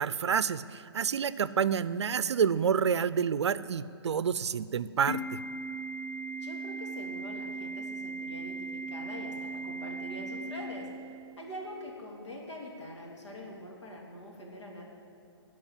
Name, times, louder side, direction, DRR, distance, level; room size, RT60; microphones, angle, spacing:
voice 1, 0.0-5.4, right 7 dB, 80° right, 16 dB, 0.5 m, -28 dB
Organ, 5.1-11.1, right 2 dB, 45° left, 1.1 m, -38 dB
voice 2, 6.4-10.9 11.4-14.8, equal, 90° left, -1 dB, 3.0 m, -44 dB
14.0 x 5.3 x 8.9 m, 2.8 s
hypercardioid pair, 160°, 14 cm